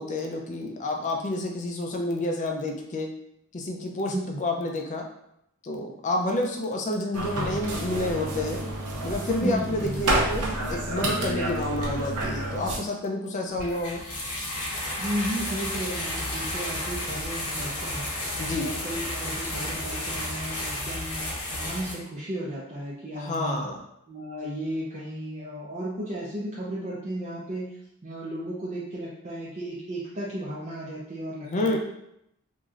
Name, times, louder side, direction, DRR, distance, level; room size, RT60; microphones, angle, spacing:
voice 1, 0.0-3.1 3.5-4.1 4.4-5.1 5.6-8.6 9.0-14.0 18.4-18.7 23.2-23.8 31.4-31.8, left 1 dB, 35° left, 2 dB, 0.4 m, -29 dB
voice 2, 4.1-4.4 9.4-10.0 15.0-18.1 18.5-23.6 24.1-27.7 28.0-31.8, right 1 dB, 30° right, -7 dB, 0.5 m, -34 dB
sound 1, 7.1-12.8, right 1 dB, 90° right, 0.6 m, -29 dB
sound 2, 13.6-21.9, left 1 dB, 90° left, 0.9 m, -32 dB
3.0 x 2.6 x 2.4 m, 0.78 s
head